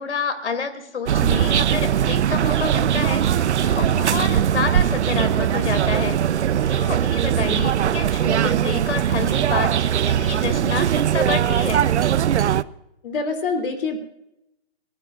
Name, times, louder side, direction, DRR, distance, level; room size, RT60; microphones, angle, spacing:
voice 1, 0.0-6.2 6.7-11.8, left 5 dB, 85° left, 9 dB, 2.7 m, -29 dB
sound 1, 1.1-12.6, right 10 dB, 80° right, 0.7 m, -20 dB
sound 2, 2.8-11.6, right 7 dB, 60° right, 1.7 m, -40 dB
sound 3, 4.3-5.0 5.3-5.4 5.9-8.3 8.6-9.9, right 7 dB, 10° right, 4.6 m, -48 dB
voice 2, 13.0-14.0, left 4 dB, 50° left, 6 dB, 3.1 m, -25 dB
24.5 x 15.5 x 2.5 m, 0.84 s
hypercardioid pair, 160°, 34 cm